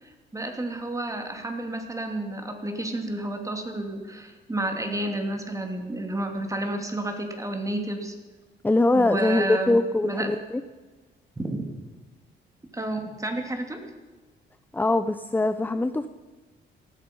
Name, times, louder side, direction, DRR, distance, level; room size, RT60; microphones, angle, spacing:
voice 1, 0.0-8.2 8.9-9.8 10.0-10.3 11.4-11.7 12.7-13.8, right 1 dB, 15° right, 4 dB, 3.0 m, -31 dB
voice 2, 8.6-10.6 14.7-16.1, left 2 dB, 10° left, 11 dB, 0.6 m, -22 dB
18.5 x 13.5 x 5.5 m, 1.3 s
cardioid pair, 90°, 20 cm